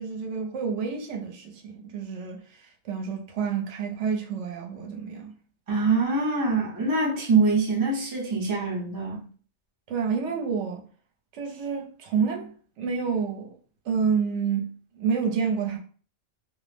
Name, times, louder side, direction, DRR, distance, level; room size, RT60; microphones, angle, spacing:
voice 1, 0.0-5.3 9.9-10.8 11.3-13.5 13.8-15.8, right 6 dB, 70° right, 0.9 m, -29 dB
voice 2, 5.7-9.2, right 4 dB, 30° right, 0.4 m, -24 dB
2.4 x 2.0 x 3.1 m
omnidirectional pair, 1.3 m